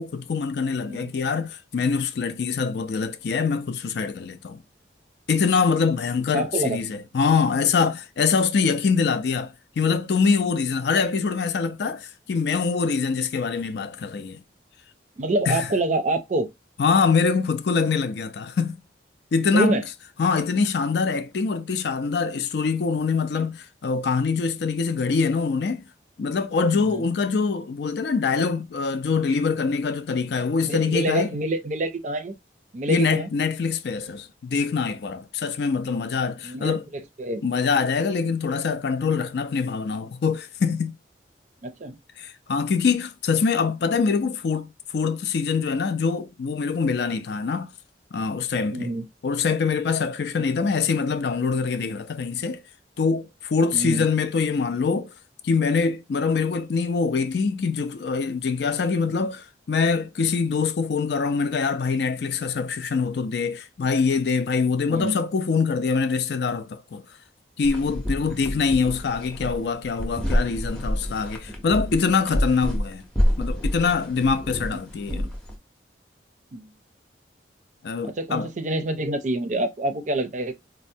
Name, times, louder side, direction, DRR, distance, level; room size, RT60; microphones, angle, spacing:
voice 1, 0.0-4.6 5.3-14.4 15.5-15.7 16.8-18.8 19.3-19.8 20.2-25.8 26.2-31.3 32.9-36.9 37.4-41.0 42.2-44.7 44.9-47.7 48.1-48.9 49.2-52.6 53.0-55.1 55.4-67.0 67.6-73.1 73.4-75.3 77.8-78.5, left 5 dB, 65° left, 0.4 m, -24 dB
voice 2, 6.3-6.8 15.2-16.5 19.5-19.8 26.7-27.1 30.6-32.3 32.7-33.3 36.4-37.4 41.6-42.0 48.7-49.1 50.6-50.7 53.7-54.1 64.9-65.2 75.1-75.3 76.5-76.7 78.0-80.5, right 1 dB, 40° right, 0.4 m, -27 dB
sound 1, 67.6-75.6, equal, 5° left, 0.6 m, -28 dB
4.3 x 2.0 x 2.6 m
head